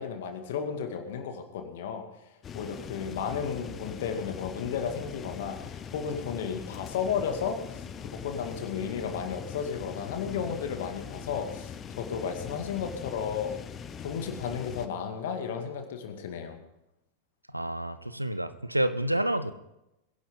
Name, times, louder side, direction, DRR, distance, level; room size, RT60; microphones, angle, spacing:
voice 1, 0.0-2.0 2.6-13.6 14.0-16.6, left 7 dB, 55° left, 6 dB, 2.1 m, -33 dB
sound 1, 2.4-14.9, left 7 dB, 25° left, 0.9 m, -41 dB
voice 2, 17.5-19.5, right 1 dB, 85° right, 12 dB, 0.8 m, -29 dB
22.0 x 11.0 x 3.9 m, 0.89 s
figure-of-eight pair, 90°, 0 cm